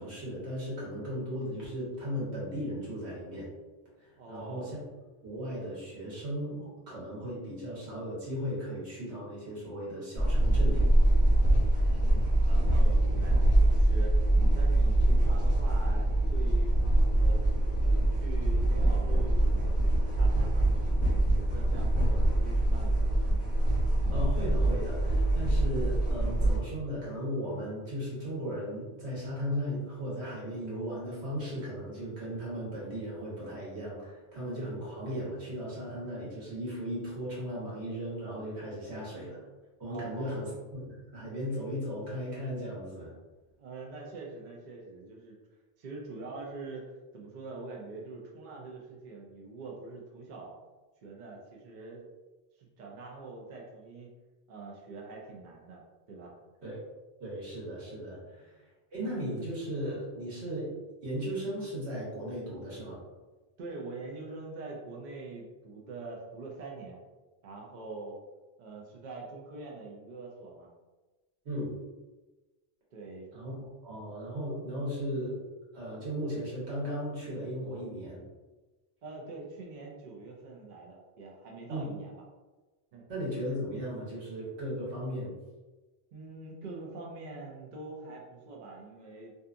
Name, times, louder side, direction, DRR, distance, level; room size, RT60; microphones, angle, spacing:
voice 1, 0.0-3.5 4.0-4.8 5.2-10.9 24.1-39.4 39.8-40.5 40.7-43.1 56.6-56.8 57.2-58.5 58.9-60.7 61.0-63.0 71.4-71.7 73.3-75.4 75.7-78.2 81.7-81.9 83.1-85.3, equal, 85° right, -6 dB, 1.3 m, -36 dB
voice 2, 4.2-4.8 11.8-14.3 14.5-16.8 17.2-17.4 17.8-20.6 21.1-23.2 38.9-39.0 39.9-40.6 43.6-45.4 45.8-50.5 51.0-52.1 52.6-54.1 54.5-55.8 56.1-56.3 58.2-58.5 63.6-67.0 67.4-68.2 68.6-70.7 72.9-73.3 79.0-82.2 82.9-83.1 86.1-89.4, right 3 dB, 55° right, -2 dB, 0.6 m, -44 dB
sound 1, 10.2-26.6, right 1 dB, 15° left, 1.2 m, -24 dB
2.7 x 2.3 x 2.4 m, 1.2 s
omnidirectional pair, 1.1 m